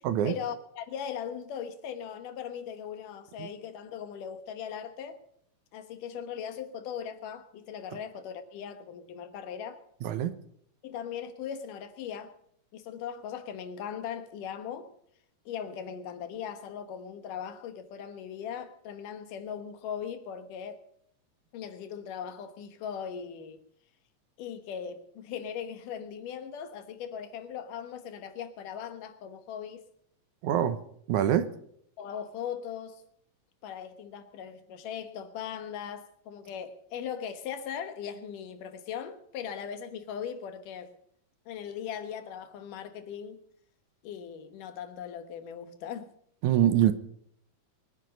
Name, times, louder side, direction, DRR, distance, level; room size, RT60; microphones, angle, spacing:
voice 1, 0.0-5.2 5.7-9.8 10.8-12.3 12.7-14.9 15.5-20.8 21.5-23.6 24.4-29.9 32.0-33.0 33.6-40.9 41.5-43.4 44.0-46.1, left 8 dB, 80° left, 2.8 m, -39 dB
voice 2, 10.0-10.3 30.4-30.8 31.1-31.5 46.4-46.9, right 10 dB, 75° right, 2.2 m, -24 dB
23.0 x 9.9 x 5.3 m
omnidirectional pair, 3.7 m